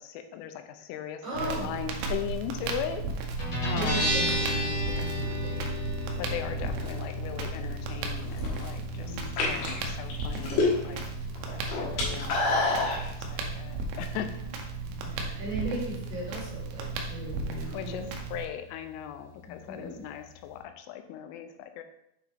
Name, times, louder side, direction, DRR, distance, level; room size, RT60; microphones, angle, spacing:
voice 1, 0.0-3.0 3.6-4.1 6.2-9.2 9.5-11.0 11.8-14.3 17.7-21.8, left 10 dB, 85° left, 7 dB, 3.1 m, -38 dB
voice 2, 1.2-1.7 3.7-5.7 6.3-7.0 9.0-9.6 11.9-12.3 14.8-18.0 19.4-20.0, right 1 dB, 45° right, -7 dB, 3.5 m, -38 dB
Crackle, 1.3-18.5, right 4 dB, 75° right, 2.7 m, -35 dB
Guitar, 3.4-20.6, left 1 dB, 35° left, 2.1 m, -36 dB
sound 1, 8.2-8.6 9.2-11.1 11.4-13.0, left 3 dB, 60° left, 3.3 m, -27 dB
7.5 x 5.8 x 3.5 m, 0.78 s
omnidirectional pair, 5.6 m